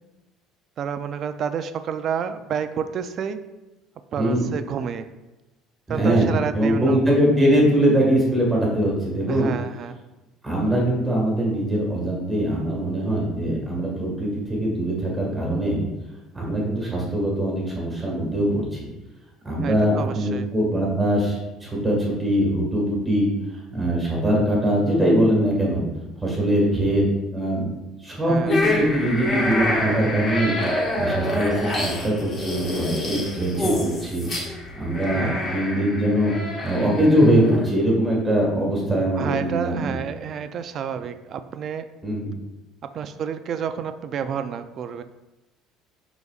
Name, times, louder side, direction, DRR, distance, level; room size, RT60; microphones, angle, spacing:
voice 1, 0.8-3.4 4.1-5.1 5.9-7.0 9.3-10.0 19.6-20.5 28.3-28.5 35.1-35.5 39.2-41.9 42.8-45.0, right 7 dB, 35° right, 10 dB, 0.4 m, -29 dB
voice 2, 5.9-9.5 10.4-15.8 16.3-18.8 19.4-23.3 23.7-25.9 26.2-27.0 27.3-27.7 28.0-30.6 30.9-34.3 34.8-36.3 36.6-40.0 42.0-42.3, right 1 dB, 10° right, -2 dB, 1.7 m, -22 dB
sound 1, 28.5-37.6, left 1 dB, 25° left, 1.5 m, -27 dB
12.0 x 4.0 x 2.4 m, 1.0 s
cardioid pair, 175°, 0 cm